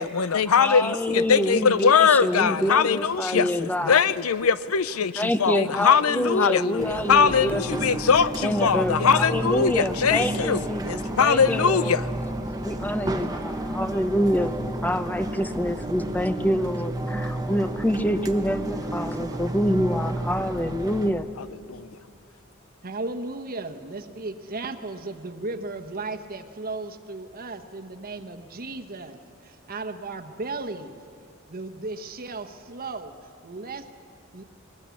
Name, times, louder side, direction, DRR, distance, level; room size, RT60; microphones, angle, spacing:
voice 1, 0.0-12.0 21.4-21.9, left 6 dB, 90° left, 16 dB, 0.6 m, -22 dB
voice 2, 0.6-4.0 5.2-7.8 8.4-12.0 12.6-14.6 14.8-21.3, equal, 10° left, 10 dB, 0.7 m, -26 dB
sound 1, 6.8-21.1, right 1 dB, 20° right, 1.0 m, -31 dB
voice 3, 22.8-31.0 31.5-33.1 33.4-33.9 34.3-34.4, right 3 dB, 45° right, 6 dB, 1.2 m, -35 dB
21.5 x 19.5 x 8.5 m, 2.3 s
head